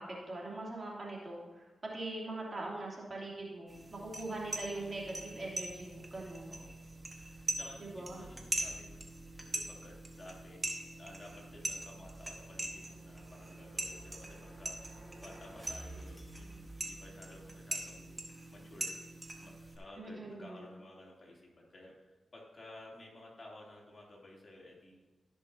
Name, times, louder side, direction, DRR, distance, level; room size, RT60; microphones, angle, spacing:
voice 1, 0.0-6.5 7.8-8.2 20.0-20.6, right 2 dB, 40° right, -3 dB, 3.1 m, -42 dB
sound 1, 3.7-19.8, right 1 dB, 25° right, 1.7 m, -42 dB
voice 2, 6.5-6.8 7.5-18.2 18.5-19.0 19.4-21.9 22.3-25.1, left 1 dB, 45° left, -3 dB, 3.2 m, -54 dB
sound 2, 10.7-17.5, right 1 dB, 10° right, 2.4 m, -55 dB
16.0 x 6.4 x 2.9 m, 1.2 s
supercardioid pair, 40°, 0 cm